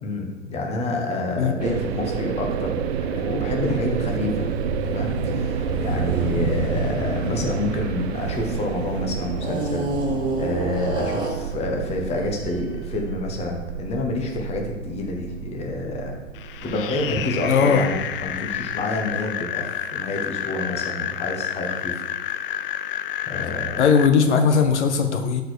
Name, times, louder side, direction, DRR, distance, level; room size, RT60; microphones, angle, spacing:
voice 1, 0.0-4.5 4.8-9.9 10.4-16.1 16.6-22.0 23.3-23.9, left 2 dB, 15° left, 2 dB, 1.2 m, -28 dB
sound 1, 1.6-19.2, right 8 dB, 55° right, 0.6 m, -30 dB
sound 2, 3.9-8.7 9.4-11.6, right 1 dB, 10° right, 2.3 m, -29 dB
sound 3, 16.4-24.1, left 11 dB, 45° left, 0.5 m, -30 dB
voice 2, 17.5-17.8 23.8-25.4, left 6 dB, 60° left, 6 dB, 1.0 m, -18 dB
12.0 x 4.7 x 4.6 m, 1.1 s
hypercardioid pair, 125°, 38 cm